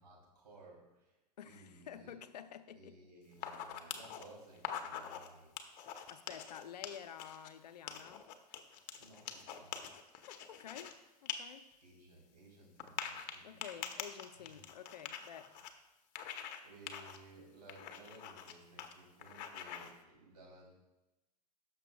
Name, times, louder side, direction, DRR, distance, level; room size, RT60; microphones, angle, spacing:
voice 1, 0.0-1.2 1.4-2.2 2.7-5.9 9.0-9.9 11.8-14.6 15.5-15.8 16.6-20.7, right 2 dB, 80° right, 3.4 m, -58 dB
voice 2, 1.4-3.0 5.9-8.3 10.2-11.0 11.2-11.7 13.4-15.5, left 9 dB, 75° left, 0.7 m, -50 dB
sound 1, 3.3-4.2 4.6-5.3 5.6-7.5 7.9-10.9 11.3-11.4 11.7-11.8 12.8-15.7 16.2-16.6 16.9-17.2 17.7-18.5 18.8-18.9 19.2-19.9, left 9 dB, 45° left, 1.0 m, -44 dB
17.0 x 6.7 x 2.4 m
figure-of-eight pair, 95°, 21 cm